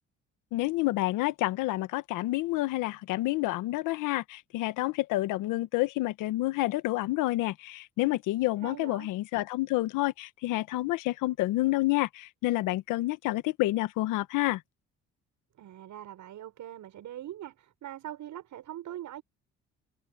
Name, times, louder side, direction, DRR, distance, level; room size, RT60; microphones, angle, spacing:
voice 1, 0.5-14.6, left 18 dB, 85° left, 1.5 m, -29 dB
voice 2, 8.6-9.1 15.6-19.2, right 12 dB, 70° right, 7.1 m, -42 dB
supercardioid pair, 65°, 31 cm